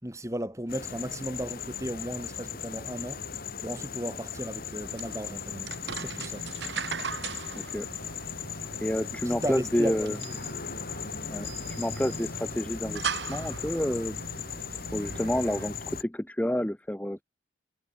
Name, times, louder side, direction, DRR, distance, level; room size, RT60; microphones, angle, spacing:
voice 1, 0.0-3.3 3.6-6.5 9.1-10.4, right 1 dB, 15° right, 3.0 m, -35 dB
sound 1, 0.7-16.0, left 6 dB, 55° left, 3.7 m, -37 dB
sound 2, 4.8-15.7, right 6 dB, 70° right, 1.5 m, -40 dB
voice 2, 7.5-7.9 8.8-10.2 11.3-11.5 11.8-14.2 14.9-17.2, left 1 dB, 5° left, 0.6 m, -29 dB
head